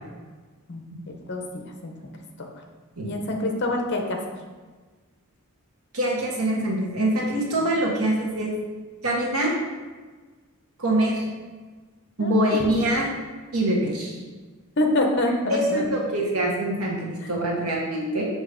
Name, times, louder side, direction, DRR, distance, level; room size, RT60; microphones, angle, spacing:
voice 1, 0.7-1.9 3.0-4.2 7.6-7.7 12.2-12.7 14.8-15.9 17.2-17.3 17.6-17.7, left 1 dB, 55° left, 2 dB, 0.9 m, -26 dB
voice 2, 5.9-8.5 9.0-9.5 10.8-11.2 12.2-13.1 13.5-14.2 15.5-18.3, right 1 dB, 90° right, -2 dB, 1.4 m, -24 dB
6.5 x 3.1 x 5.1 m, 1.4 s
head